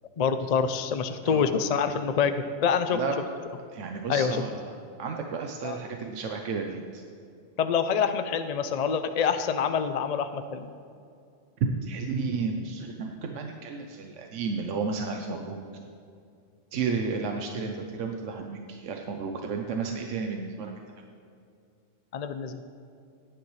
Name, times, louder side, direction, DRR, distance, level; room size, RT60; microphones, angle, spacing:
voice 1, 0.2-3.0 4.1-4.4 5.6-5.8 7.6-10.7 22.1-22.6, left 6 dB, 50° left, 9 dB, 0.5 m, -26 dB
voice 2, 1.2-1.6 2.9-3.1 3.7-4.7 5.0-7.0 11.8-15.8 16.7-20.7, right 5 dB, 75° right, 3 dB, 1.1 m, -32 dB
17.5 x 10.0 x 3.2 m, 2.4 s
omnidirectional pair, 1.3 m